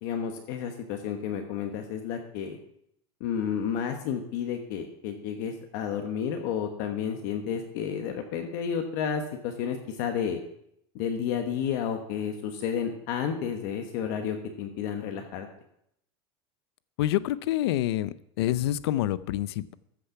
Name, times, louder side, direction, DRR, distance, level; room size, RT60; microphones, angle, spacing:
voice 1, 0.0-2.6 3.2-10.4 10.9-15.5, left 7 dB, 50° left, 4 dB, 1.2 m, -31 dB
voice 2, 17.0-19.7, left 13 dB, 75° left, 17 dB, 0.5 m, -27 dB
14.0 x 6.6 x 5.7 m, 0.75 s
supercardioid pair, 180°, 13 cm